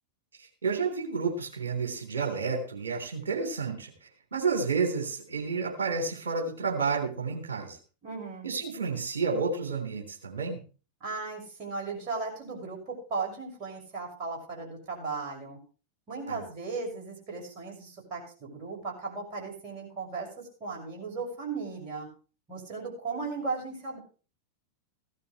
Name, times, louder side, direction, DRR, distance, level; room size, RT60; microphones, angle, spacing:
voice 1, 0.6-3.9 4.3-7.8 8.4-10.6 16.3-16.4, right 4 dB, 65° right, 3 dB, 3.4 m, -30 dB
voice 2, 8.0-8.5 11.0-15.6 16.1-22.1 22.5-24.0, right 4 dB, 40° right, 1 dB, 6.3 m, -36 dB
16.0 x 12.5 x 3.3 m, 0.35 s
figure-of-eight pair, 90°, 0 cm